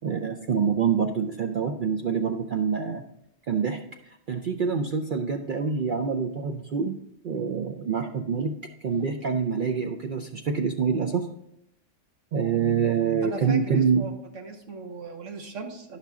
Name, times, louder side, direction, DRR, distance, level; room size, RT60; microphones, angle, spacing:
voice 1, 0.0-3.0 3.5-7.0 7.2-11.3 12.3-14.1, right 6 dB, 60° right, 3 dB, 0.5 m, -26 dB
voice 2, 13.2-16.0, right 4 dB, 80° right, 3 dB, 1.4 m, -38 dB
10.5 x 5.8 x 3.6 m, 0.78 s
omnidirectional pair, 1.3 m